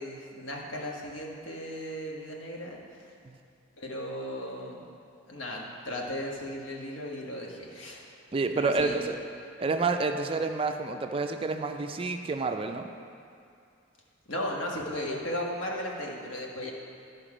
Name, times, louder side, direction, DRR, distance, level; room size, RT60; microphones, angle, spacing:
voice 1, 0.0-2.8 3.8-4.8 5.3-8.1 8.5-9.0 14.3-16.7, left 1 dB, 80° left, -2 dB, 1.4 m, -36 dB
voice 2, 8.3-9.2 9.6-12.9, right 3 dB, 30° right, 6 dB, 0.4 m, -29 dB
12.5 x 5.1 x 5.0 m, 2.4 s
head